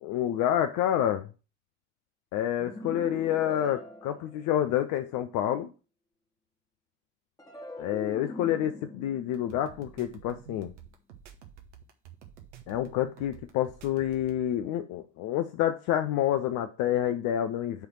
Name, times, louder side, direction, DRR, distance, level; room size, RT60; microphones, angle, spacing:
voice 1, 0.0-1.3 2.3-5.7 7.8-10.7 12.7-17.9, left 11 dB, 55° left, 0.6 m, -28 dB
sound 1, 2.6-5.0 7.4-10.7, left 1 dB, 10° left, 1.5 m, -43 dB
sound 2, 9.3-14.4, right 9 dB, 75° right, 1.0 m, -49 dB
6.4 x 3.3 x 6.0 m
figure-of-eight pair, 55°, 36 cm